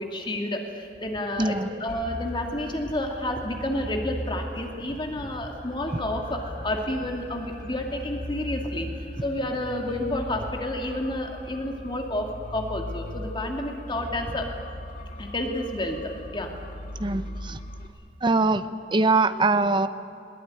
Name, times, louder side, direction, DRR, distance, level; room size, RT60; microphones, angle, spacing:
voice 1, 0.0-8.9 9.2-14.5 15.2-16.5, left 1 dB, 30° left, 2 dB, 2.3 m, -30 dB
voice 2, 1.4-1.7 17.0-17.6 18.2-19.9, right 3 dB, 25° right, 11 dB, 0.8 m, -23 dB
sound 1, 1.9-17.9, equal, 50° left, 2.3 m, -38 dB
21.0 x 19.5 x 9.6 m, 2.6 s
head